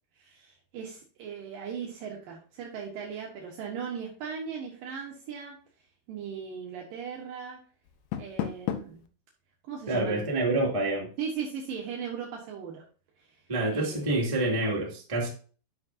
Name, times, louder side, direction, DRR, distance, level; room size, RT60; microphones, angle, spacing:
voice 1, 0.1-5.6 6.1-7.6 8.2-9.0 9.7-10.3 11.2-12.8 13.2-13.4 13.7-14.1, right 7 dB, 70° right, -1 dB, 2.1 m, -38 dB
Door, 7.8-9.1, left 10 dB, 80° left, 3.4 m, -34 dB
voice 2, 9.9-11.1 13.5-15.3, right 2 dB, 25° right, -3 dB, 0.6 m, -27 dB
11.0 x 6.7 x 2.8 m, 0.39 s
omnidirectional pair, 5.9 m